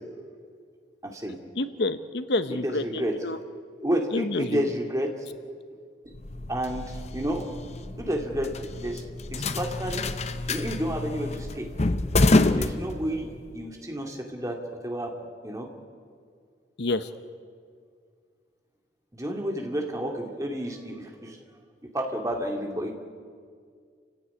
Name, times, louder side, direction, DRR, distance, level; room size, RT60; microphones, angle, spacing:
voice 1, 1.0-1.4 2.5-3.2 3.8-5.1 6.0-6.1 6.5-7.4 8.0-9.0 9.3-10.1 10.5-11.7 12.5-15.1 15.4-15.7 19.1-21.4 21.9-22.9, equal, 15° right, 2 dB, 2.5 m, -30 dB
voice 2, 1.6-3.4 4.1-4.6 16.8-17.1, left 2 dB, 65° left, 11 dB, 0.9 m, -28 dB
sound 1, 6.1-13.5, left 2 dB, 35° left, 0.8 m, -27 dB
29.0 x 16.0 x 9.6 m, 2.1 s
head